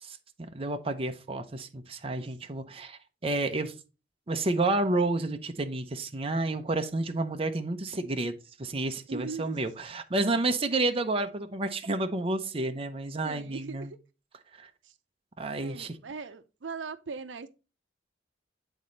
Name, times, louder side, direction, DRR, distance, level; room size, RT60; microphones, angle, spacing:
voice 1, 0.0-3.7 4.3-13.9 14.6-14.7 15.4-15.9, right 2 dB, 30° right, 0.7 m, -30 dB
voice 2, 9.1-9.6 13.2-14.0 14.8-15.0 15.6-17.5, right 4 dB, 85° right, 0.6 m, -40 dB
8.2 x 4.2 x 3.8 m
head